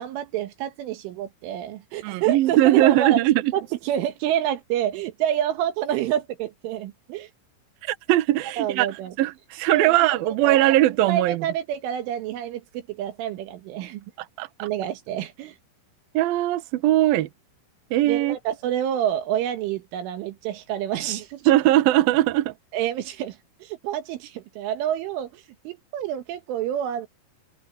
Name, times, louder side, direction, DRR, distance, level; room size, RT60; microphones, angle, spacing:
voice 1, 0.0-3.2 3.5-7.3 8.6-9.1 9.7-10.0 10.4-10.6 11.1-14.1 14.6-15.6 18.0-21.5 22.7-27.1, right 11 dB, 85° right, 4.2 m, -28 dB
voice 2, 2.0-3.5 7.8-8.9 9.2-11.5 14.2-14.7 16.1-17.3 17.9-18.4 21.5-22.5, right 15 dB, 70° right, 2.4 m, -20 dB
omnidirectional pair, 5.6 m